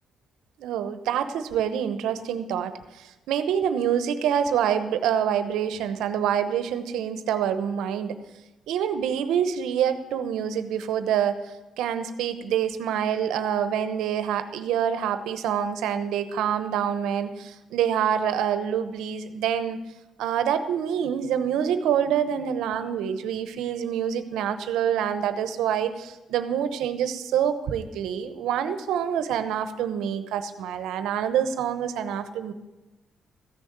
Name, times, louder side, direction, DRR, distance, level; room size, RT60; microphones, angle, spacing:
voice 1, 0.6-8.2 8.7-19.8 20.2-32.5, right 9 dB, 85° right, 11 dB, 1.0 m, -26 dB
14.5 x 6.6 x 8.7 m, 1.0 s
cardioid pair, 90°, 0 cm